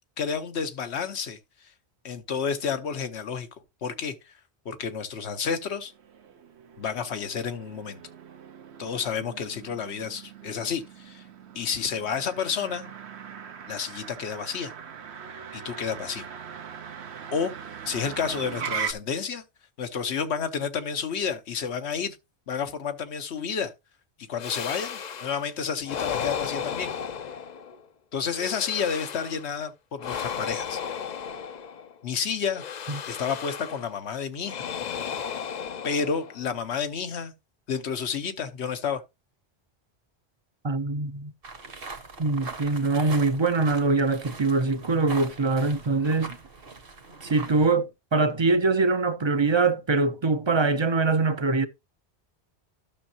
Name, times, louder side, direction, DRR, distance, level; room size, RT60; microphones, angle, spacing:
voice 1, 0.2-1.7 2.0-3.5 3.8-4.3 4.6-5.9 6.8-8.0 8.8-11.3 11.5-12.9 13.7-14.7 15.5-16.3 17.3-17.5 17.8-19.4 19.8-22.2 22.5-23.7 24.3-26.9 28.1-30.8 32.0-32.6 33.1-34.7 35.8-37.3 37.7-39.0, left 6 dB, 85° left, 1.2 m, -30 dB
Motor vehicle (road), 5.8-18.9, right 7 dB, 80° right, 1.1 m, -40 dB
sound 1, 24.4-25.5 25.8-27.8 28.3-29.5 30.0-32.0 32.5-33.9 34.4-36.5, left 7 dB, 50° left, 0.6 m, -34 dB
voice 2, 40.6-41.3 42.2-46.4 47.2-51.7, right 3 dB, 35° right, 0.5 m, -23 dB
sound 2, 41.4-47.7, right 4 dB, 60° right, 1.5 m, -41 dB
12.0 x 6.3 x 2.8 m
omnidirectional pair, 1.1 m